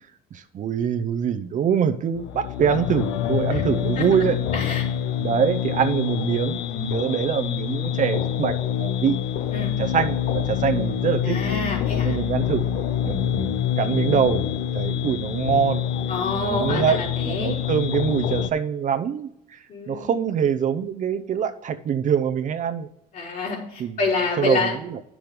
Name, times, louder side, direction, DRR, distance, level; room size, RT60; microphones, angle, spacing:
voice 1, 0.3-4.4 5.2-9.2 9.8-11.4 12.0-12.7 13.0-14.5 14.7-15.8 16.4-22.9 23.8-24.0 24.4-25.0, right 8 dB, 50° right, 9 dB, 0.7 m, -24 dB
sound 1, 2.2-18.5, left 10 dB, 85° left, 0.6 m, -26 dB
voice 2, 4.5-4.9 9.5-9.7 11.2-12.2 16.1-17.5 19.7-20.1 23.1-24.8, left 3 dB, 60° left, -4 dB, 3.9 m, -27 dB
10.5 x 6.2 x 5.1 m, 0.76 s
cardioid pair, 110°, 17 cm